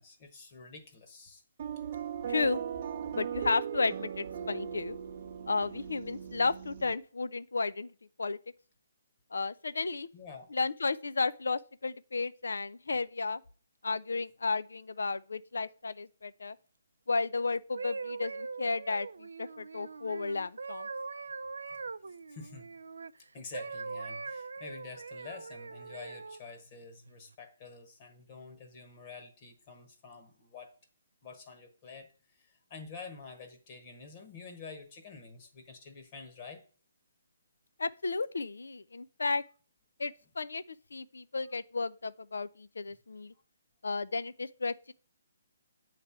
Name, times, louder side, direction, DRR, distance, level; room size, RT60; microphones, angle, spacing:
voice 1, 0.0-1.4 1.9-2.2 10.1-10.5 22.3-22.7 23.3-30.7 31.2-36.6 41.4-41.6, left 4 dB, 35° left, 1.3 m, -48 dB
sound 1, 1.6-6.9, right 8 dB, 40° right, 0.6 m, -38 dB
voice 2, 2.3-2.6 3.1-5.0 5.5-7.9 8.2-8.4 9.3-10.1 10.5-13.4 13.8-16.5 17.1-19.1 19.4-20.9 37.8-39.4 40.0-40.6 40.9-43.3 43.8-44.9, left 4 dB, 90° left, 0.4 m, -33 dB
sound 2, 17.5-23.1 23.5-26.4 27.1-27.3, right 4 dB, 90° right, 0.4 m, -41 dB
7.9 x 3.3 x 5.8 m
hypercardioid pair, 160°, 0 cm